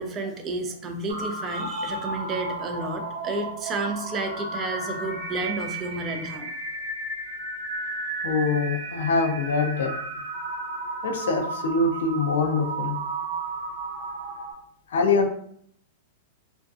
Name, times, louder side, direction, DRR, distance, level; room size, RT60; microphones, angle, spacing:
voice 1, 0.0-6.5, right 2 dB, 25° right, 4 dB, 0.4 m, -31 dB
sound 1, 1.1-14.5, right 2 dB, 70° right, 0.7 m, -33 dB
voice 2, 8.2-9.9 11.0-13.0 14.9-15.3, left 4 dB, 80° left, 4 dB, 0.5 m, -24 dB
2.5 x 2.2 x 2.4 m, 0.67 s
hypercardioid pair, 130°, 0 cm